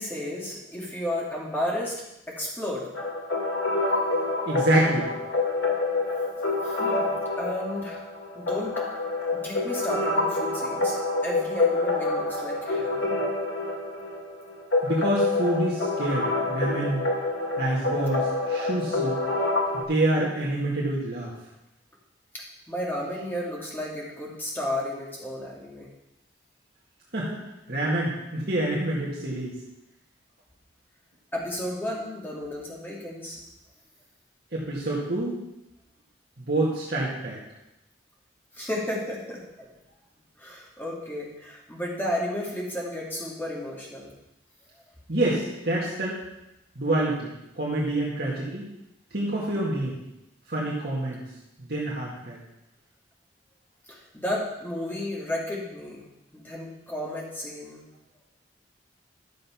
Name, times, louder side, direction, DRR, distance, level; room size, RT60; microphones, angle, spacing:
voice 1, 0.0-1.9 2.3-2.9 6.6-7.1 7.4-8.1 8.3-8.8 9.3-13.2 22.3-25.9 31.3-33.4 38.5-39.7 40.4-44.1 49.6-49.7 53.9-57.8, left 1 dB, 10° left, -4 dB, 2.4 m, -33 dB
sound 1, 2.9-19.8, left 2 dB, 85° left, 2.3 m, -27 dB
voice 2, 4.4-5.1 14.8-17.0 17.6-19.2 19.7-21.3 27.1-29.5 34.5-35.4 36.4-37.4 45.1-46.2 46.8-48.7 49.1-50.0 50.5-51.2 51.6-52.4, right 1 dB, 55° right, -5 dB, 2.0 m, -27 dB
11.5 x 6.6 x 5.8 m, 0.89 s
head